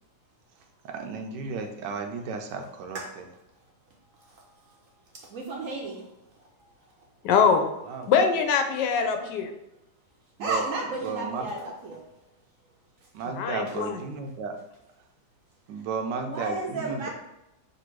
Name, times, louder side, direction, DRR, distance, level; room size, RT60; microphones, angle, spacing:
voice 1, 0.8-3.3 7.8-8.1 10.4-10.7 11.0-11.5 13.1-14.6 15.7-17.1, right 4 dB, 80° right, 5 dB, 1.2 m, -34 dB
voice 2, 5.3-6.0 10.4-12.0 16.3-17.1, right 3 dB, 65° right, -1 dB, 0.8 m, -32 dB
voice 3, 7.2-7.6 8.1-9.5 13.3-14.0, left 6 dB, 80° left, 5 dB, 1.2 m, -23 dB
3.4 x 2.6 x 4.5 m, 0.89 s
omnidirectional pair, 1.9 m